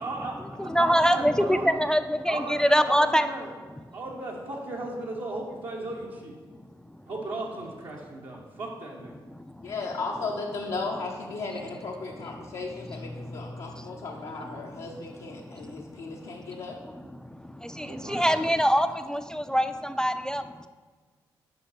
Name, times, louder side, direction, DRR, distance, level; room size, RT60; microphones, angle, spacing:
voice 1, 0.0-1.6 2.3-3.5 3.9-6.4 7.1-9.3 17.8-18.5, right 2 dB, 60° right, -3 dB, 0.9 m, -36 dB
voice 2, 0.6-3.3 9.4-9.7 13.1-13.5 13.7-13.9 15.4-16.6 17.2-20.7, equal, 5° left, 9 dB, 0.3 m, -25 dB
voice 3, 9.6-16.8, left 3 dB, 70° left, -3 dB, 0.6 m, -35 dB
5.8 x 5.2 x 4.0 m, 1.4 s
hypercardioid pair, 40°, 10 cm